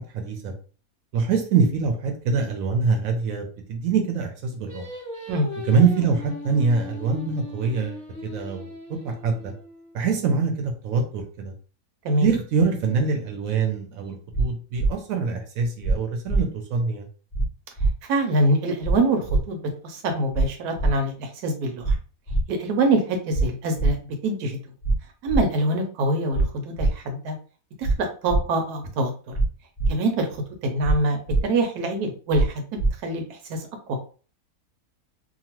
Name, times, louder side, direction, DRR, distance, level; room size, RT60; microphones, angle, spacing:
voice 1, 0.1-0.5 1.1-4.9 5.7-9.5 9.9-11.5 12.2-17.1, right 5 dB, 70° right, 4 dB, 0.9 m, -24 dB
Singing, 4.7-9.9, left 2 dB, 15° left, 1.0 m, -38 dB
sound 1, 14.3-14.4 14.8-14.9 15.8-15.9 16.3-16.4 17.3-17.5 17.8-17.9 18.8-18.9 19.3-19.4 20.3-20.4 20.8-20.9 21.8-22.0 22.3-22.4 23.3-23.4 23.8-23.9 24.8-25.0 25.3-25.4 26.3-26.4 26.8-26.9 27.8-27.9 28.3-28.4 29.3-29.5 29.8-29.9 30.8-31.0 31.3-31.4 32.3-32.5 32.8-32.9, right 3 dB, 35° left, 0.7 m, -21 dB
voice 2, 18.1-22.0 22.5-24.0 24.2-24.6 25.2-27.4 27.8-29.1 29.9-33.2 33.5-33.6, right 2 dB, 90° right, 5 dB, 1.2 m, -24 dB
2.8 x 2.2 x 2.9 m, 0.38 s
omnidirectional pair, 1.6 m